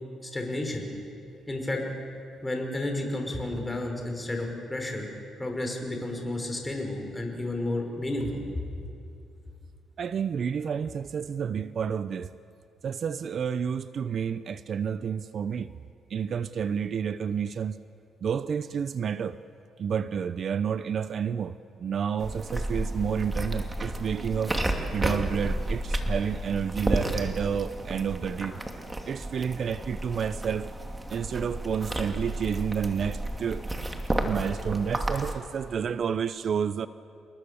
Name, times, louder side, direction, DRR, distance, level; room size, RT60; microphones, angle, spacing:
voice 1, 0.2-0.9 1.5-1.8 2.4-5.1 5.4-8.6, left 1 dB, 15° left, 5.6 m, -31 dB
voice 2, 10.0-12.3 12.8-15.7 16.1-17.8 18.2-19.4 19.8-24.6 24.9-28.6 29.1-30.7 31.1-33.7 34.2-36.9, right 7 dB, 55° right, 0.6 m, -30 dB
sound 1, 22.2-35.3, right 1 dB, 15° right, 2.4 m, -32 dB
28.5 x 21.0 x 7.0 m
cardioid pair, 90°, 0 cm